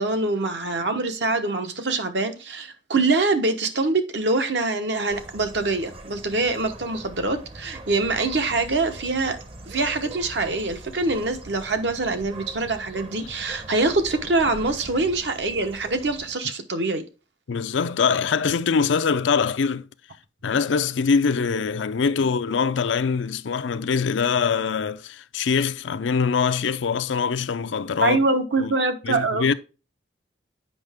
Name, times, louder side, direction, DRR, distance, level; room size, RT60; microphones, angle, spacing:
voice 1, 0.0-9.4 9.7-17.0 28.0-29.5, right 3 dB, 65° right, 1.0 m, -24 dB
sound 1, 5.1-16.4, right 2 dB, 30° right, 0.8 m, -42 dB
voice 2, 17.5-19.9 20.4-28.2 28.6-28.7 29.0-29.5, left 5 dB, 85° left, 0.5 m, -23 dB
7.9 x 5.6 x 3.5 m
head